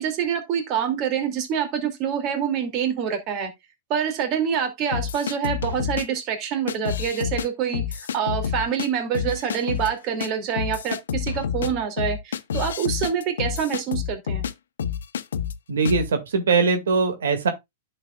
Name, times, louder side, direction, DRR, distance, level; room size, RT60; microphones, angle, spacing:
voice 1, 0.0-3.5 3.9-14.4, right 8 dB, 35° right, 2.5 m, -26 dB
sound 1, 4.9-6.0 6.7-7.5 7.7-8.9 9.1-9.9 10.2-10.3 10.6-14.5 14.8-15.5 15.9-16.1, left 8 dB, 85° left, 0.8 m, -28 dB
voice 2, 15.7-17.5, right 4 dB, 90° right, 2.1 m, -21 dB
10.5 x 6.7 x 2.3 m
hypercardioid pair, 150°, 0 cm